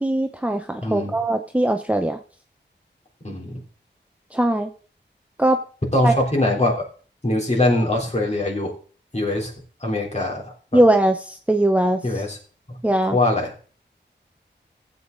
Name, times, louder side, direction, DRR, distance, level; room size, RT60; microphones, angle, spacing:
voice 1, 0.0-2.2 4.3-4.7 5.4-5.6 6.0-6.1 10.7-12.0 12.8-13.2, right 1 dB, 5° right, 6 dB, 0.8 m, -20 dB
voice 2, 0.8-1.2 3.2-3.6 5.9-6.7 7.2-8.7 9.1-9.5 9.8-10.8 12.0-12.4 12.7-12.8 13.1-13.5, left 1 dB, 35° left, -2 dB, 3.6 m, -22 dB
15.0 x 8.1 x 4.0 m, 0.41 s
wide cardioid pair, 75°, 19 cm